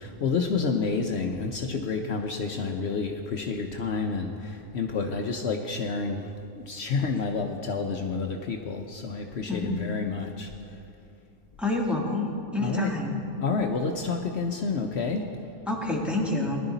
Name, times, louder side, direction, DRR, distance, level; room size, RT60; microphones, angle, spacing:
voice 1, 0.0-6.3 6.6-10.6 12.6-12.9 13.4-15.2, left 4 dB, 60° left, 3 dB, 1.0 m, -29 dB
voice 2, 11.6-13.1 15.7-16.6, left 2 dB, ahead, -3 dB, 1.7 m, -28 dB
20.0 x 11.5 x 4.0 m, 2.6 s
omnidirectional pair, 1.3 m